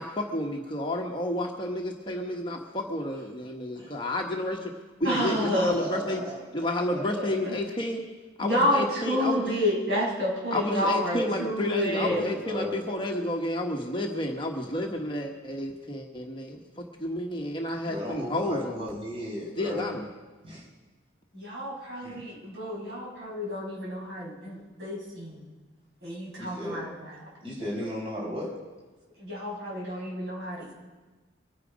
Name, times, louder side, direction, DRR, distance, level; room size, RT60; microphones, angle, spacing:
voice 1, 0.0-4.7 5.0-6.2 6.5-8.0 8.4-9.6 10.5-18.9 19.6-20.0, left 1 dB, 25° left, 1 dB, 1.2 m, -31 dB
voice 2, 5.0-6.4 6.8-7.6 8.4-12.2 21.3-25.5 26.0-27.3 29.2-30.7, left 1 dB, 60° right, -4 dB, 6.0 m, -30 dB
voice 3, 11.8-12.8 17.9-20.0 20.4-20.6 22.0-22.2 26.4-26.8 27.4-28.5, left 1 dB, 30° right, -4 dB, 4.5 m, -35 dB
24.0 x 9.9 x 5.2 m, 1.3 s
head